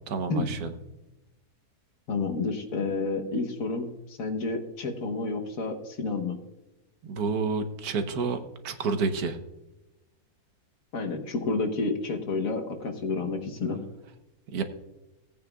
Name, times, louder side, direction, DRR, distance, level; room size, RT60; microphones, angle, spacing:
voice 1, 0.1-0.7 7.1-8.4 8.6-9.4 14.5-14.6, right 4 dB, 75° right, 8 dB, 1.4 m, -29 dB
voice 2, 2.1-6.4 10.9-13.8, left 3 dB, 60° left, 4 dB, 1.4 m, -30 dB
17.0 x 8.8 x 2.3 m, 0.98 s
omnidirectional pair, 1.6 m